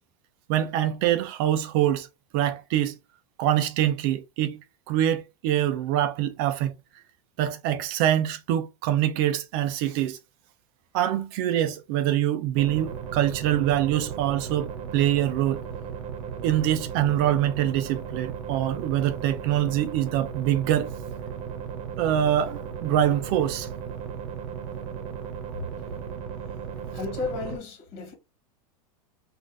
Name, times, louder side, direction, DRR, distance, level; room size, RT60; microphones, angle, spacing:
voice 1, 0.5-2.1 2.3-3.0 3.4-4.6 4.9-6.7 7.4-10.2 10.9-15.6 16.4-20.9 22.0-23.7, right 11 dB, 40° right, 0.5 m, -24 dB
sound 1, 12.5-27.6, right 7 dB, 60° right, 0.9 m, -36 dB
voice 2, 26.9-28.1, left 4 dB, 30° left, 1.7 m, -33 dB
3.6 x 2.5 x 2.6 m
supercardioid pair, 165°, 19 cm